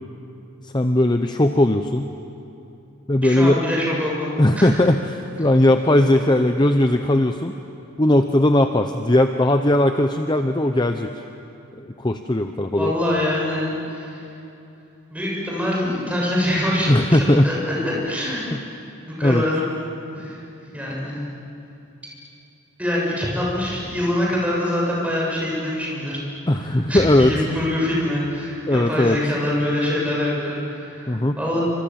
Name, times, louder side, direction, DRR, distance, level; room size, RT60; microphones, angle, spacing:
voice 1, 0.6-2.1 3.1-3.6 4.4-7.5 8.0-11.1 11.8-12.9 16.9-17.5 18.5-18.6 19.2-19.4 26.5-27.3 28.7-29.2 31.1-31.4, left 1 dB, 20° left, 6 dB, 0.7 m, -18 dB
voice 2, 3.2-4.3 4.6-4.7 12.8-14.3 15.1-18.6 19.0-19.7 20.1-20.4 20.7-21.2 22.8-26.2 26.9-31.6, left 1 dB, 5° right, -4 dB, 7.2 m, -24 dB
28.5 x 26.5 x 7.6 m, 2.8 s
head